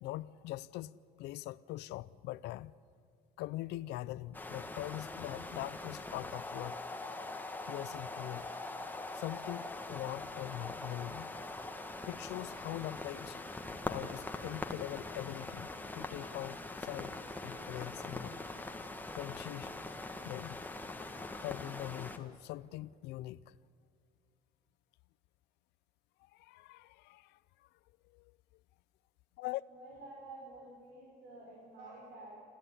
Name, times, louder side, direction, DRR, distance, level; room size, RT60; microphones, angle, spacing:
voice 1, 0.0-2.7 3.4-6.8 7.7-8.5 9.1-11.3 12.1-13.4 13.9-18.3 19.1-19.7 20.2-20.6 21.4-23.5 26.2-27.7 28.1-28.3 29.4-29.6, left 16 dB, 85° left, 0.6 m, -42 dB
sound 1, 4.3-22.2, left 2 dB, 10° left, 1.6 m, -43 dB
voice 2, 29.7-32.4, right 2 dB, 80° right, 5.4 m, -50 dB
28.0 x 14.0 x 9.9 m
cardioid pair, 110°, 17 cm